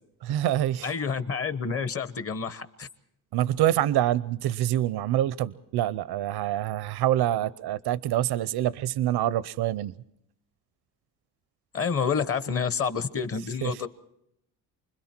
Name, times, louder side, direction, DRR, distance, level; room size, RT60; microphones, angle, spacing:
voice 1, 0.2-0.9 3.3-9.9 13.6-13.9, right 12 dB, 85° right, 0.7 m, -26 dB
voice 2, 0.8-2.9 11.7-13.9, left 6 dB, 40° left, 1.1 m, -29 dB
29.0 x 21.5 x 4.4 m
cardioid pair, 170°, 37 cm